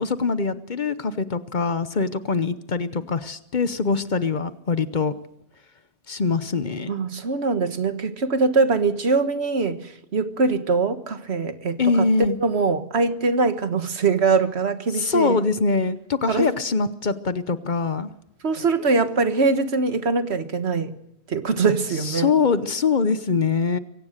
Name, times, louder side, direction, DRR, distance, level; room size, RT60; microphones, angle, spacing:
voice 1, 0.0-5.2 6.1-6.9 11.8-12.4 14.9-18.1 22.0-23.8, left 4 dB, 45° left, 1.0 m, -23 dB
voice 2, 6.9-12.1 12.4-15.4 16.3-16.5 18.4-20.9 21.3-22.3, right 4 dB, 75° right, 1.7 m, -22 dB
24.0 x 17.5 x 6.6 m
omnidirectional pair, 1.1 m